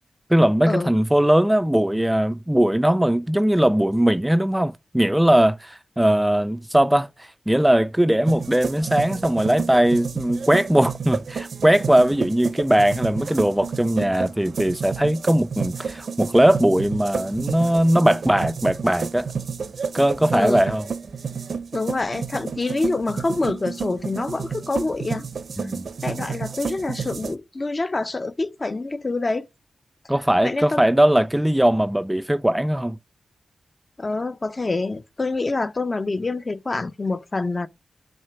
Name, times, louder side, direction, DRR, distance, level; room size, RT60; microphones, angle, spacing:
voice 1, 0.3-19.3 19.9-20.9 25.6-25.9 30.1-33.0, right 1 dB, 10° right, 0.3 m, -19 dB
sound 1, 8.3-27.3, right 6 dB, 75° right, 0.6 m, -31 dB
voice 2, 21.7-25.3 26.0-29.5 30.4-30.8 34.0-37.7, left 3 dB, 35° left, 0.6 m, -26 dB
6.2 x 3.4 x 5.8 m
wide cardioid pair, 80°, 0 cm